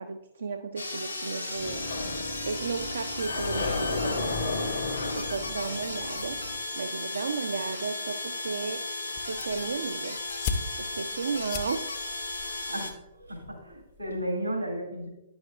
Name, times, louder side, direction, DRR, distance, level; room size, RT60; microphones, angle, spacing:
voice 1, 0.0-1.9 2.5-4.7 5.1-6.4 6.7-8.8 9.2-10.2 10.8-11.9, right 4 dB, 65° right, 8 dB, 0.4 m, -34 dB
sound 1, 0.8-12.9, left 2 dB, 85° left, 1.0 m, -35 dB
Sliding door, 1.6-6.6, left 3 dB, 65° left, 1.0 m, -33 dB
sound 2, 9.2-14.2, left 5 dB, 40° left, 0.5 m, -39 dB
voice 2, 12.7-15.1, right 1 dB, 85° right, -1 dB, 2.3 m, -34 dB
10.0 x 6.0 x 2.5 m, 0.89 s
figure-of-eight pair, 115°, 0 cm